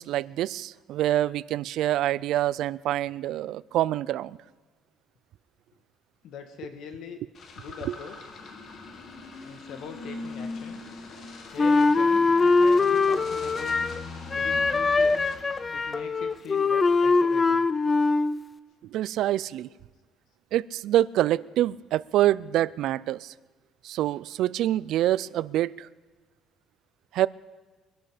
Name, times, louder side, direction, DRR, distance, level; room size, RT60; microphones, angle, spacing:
voice 1, 0.0-4.4 7.9-8.0 18.9-19.7 20.5-23.3 23.8-25.9 27.1-27.3, right 13 dB, 65° right, 21 dB, 0.4 m, -26 dB
voice 2, 6.2-7.2 7.6-8.3 9.4-10.8 11.5-13.8 14.3-15.2 15.7-17.7 19.7-19.8, left 6 dB, 65° left, 7 dB, 1.7 m, -42 dB
sound 1, 7.3-16.9, left 3 dB, 40° left, 1.9 m, -42 dB
Wind instrument woodwind instrument, 11.6-14.0 14.3-18.4, left 3 dB, 20° left, 0.5 m, -22 dB
23.0 x 11.5 x 5.1 m, 1.4 s
cardioid pair, 140°, 0 cm